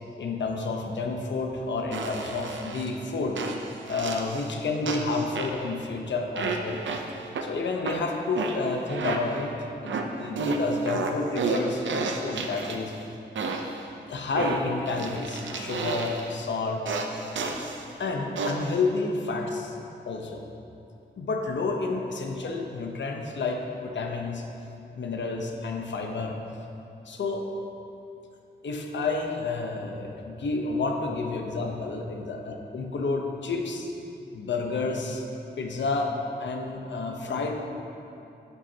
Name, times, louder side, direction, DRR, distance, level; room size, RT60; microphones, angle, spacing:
voice 1, 0.2-3.5 3.9-6.8 7.4-12.9 14.1-16.8 18.0-19.8 20.1-20.4 21.2-24.4 25.0-26.4 27.1-27.4 28.6-33.9 34.3-35.2 35.6-37.5, left 3 dB, 75° left, 2 dB, 1.0 m, -30 dB
sound 1, 1.9-2.9 3.4-4.5 4.9-5.8 6.4-7.5 7.9-9.5 9.9-13.0 13.4-13.8 14.4-16.4 16.9-17.8 18.4-18.8, right 4 dB, 90° right, 0.7 m, -31 dB
11.0 x 8.2 x 2.9 m, 2.8 s
wide cardioid pair, 110°, 19 cm